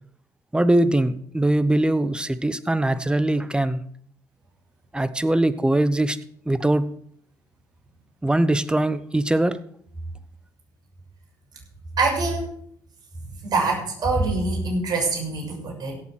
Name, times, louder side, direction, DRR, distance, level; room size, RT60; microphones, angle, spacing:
voice 1, 0.5-3.8 4.9-6.2 6.5-6.9 8.2-9.6, right 1 dB, 10° right, 15 dB, 1.0 m, -21 dB
voice 2, 12.0-12.5 13.4-16.0, right 3 dB, 50° right, 0 dB, 6.6 m, -24 dB
17.0 x 7.2 x 6.1 m, 0.65 s
hypercardioid pair, 60°, 9 cm